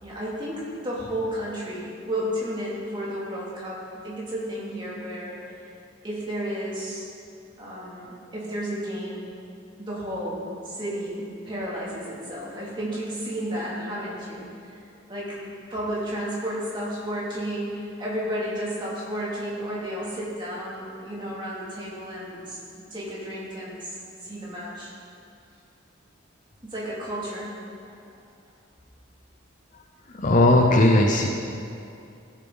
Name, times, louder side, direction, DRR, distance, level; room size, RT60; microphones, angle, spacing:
voice 1, 0.0-5.7 6.0-7.1 7.6-9.3 9.8-14.8 15.1-22.6 22.9-24.9 26.6-27.5 27.9-28.0, equal, 25° right, -7 dB, 2.6 m, -32 dB
voice 2, 30.1-31.3, left 1 dB, 40° left, 2 dB, 0.7 m, -18 dB
15.0 x 7.4 x 4.0 m, 2.5 s
head